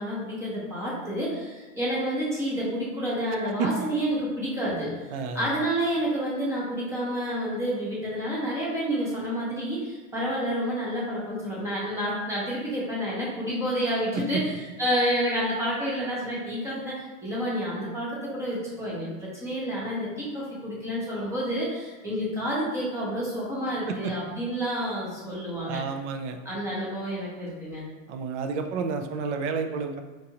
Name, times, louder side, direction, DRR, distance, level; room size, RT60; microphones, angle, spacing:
voice 1, 0.0-4.9 5.3-25.8 26.4-27.8, equal, 5° right, -6 dB, 0.7 m, -29 dB
voice 2, 5.1-5.4 14.1-14.4 23.9-24.1 25.6-26.4 28.1-30.0, right 5 dB, 60° right, 6 dB, 0.5 m, -30 dB
4.5 x 2.5 x 2.8 m, 1.3 s
supercardioid pair, 170°, 40 cm